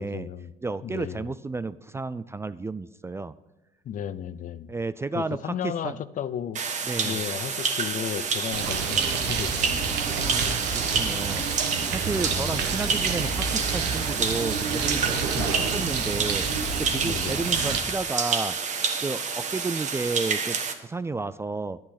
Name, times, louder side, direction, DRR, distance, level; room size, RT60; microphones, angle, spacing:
voice 1, 0.0-0.5 0.8-1.3 3.8-4.7 5.1-6.6 7.0-9.9 11.0-11.2 12.3-12.6 15.3-15.7 17.0-17.4, left 9 dB, 50° left, 15 dB, 0.6 m, -34 dB
voice 2, 0.6-3.4 4.7-6.0 6.8-7.2 10.2-11.5 11.9-15.3 15.7-16.5 16.8-18.6 19.0-21.8, right 3 dB, 15° right, 15 dB, 0.3 m, -32 dB
sound 1, 6.6-20.7, right 5 dB, 45° right, 1.4 m, -28 dB
Bird, 8.5-17.8, right 5 dB, 80° right, 1.4 m, -29 dB
10.5 x 8.6 x 5.8 m, 1.1 s
cardioid pair, 110°, 17 cm